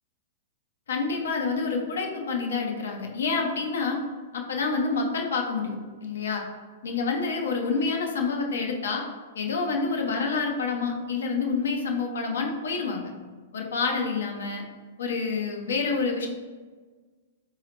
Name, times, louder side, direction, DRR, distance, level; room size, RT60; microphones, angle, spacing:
voice 1, 0.9-4.0 4.3-6.4 6.8-9.0 9.3-13.1 13.5-14.6 15.0-16.3, left 4 dB, 80° left, 2 dB, 0.7 m, -28 dB
4.1 x 2.8 x 2.9 m, 1.4 s
hypercardioid pair, 120°, 0 cm